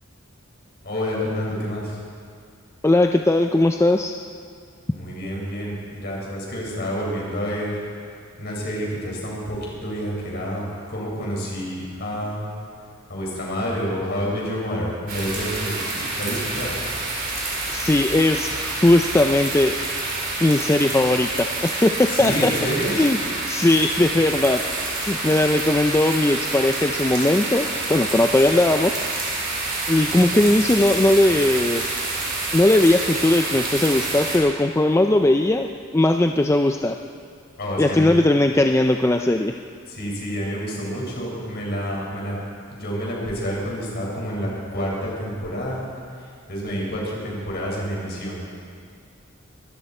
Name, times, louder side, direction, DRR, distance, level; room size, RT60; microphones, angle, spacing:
voice 1, 0.8-2.0 4.9-7.8 8.4-12.5 13.1-16.8 22.1-22.9 30.1-30.2 37.6-38.2 39.9-42.4 42.7-45.9 46.1-48.5, equal, 50° left, -4 dB, 5.3 m, -28 dB
voice 2, 2.8-4.1 17.7-19.8 20.4-22.5 22.9-23.2 23.5-24.6 25.0-28.9 29.9-31.8 32.5-36.9 37.8-39.5, left 1 dB, 15° left, 4 dB, 0.4 m, -19 dB
sound 1, 15.1-34.4, right 2 dB, 45° right, 4.2 m, -28 dB
23.0 x 13.5 x 4.3 m, 2.3 s
head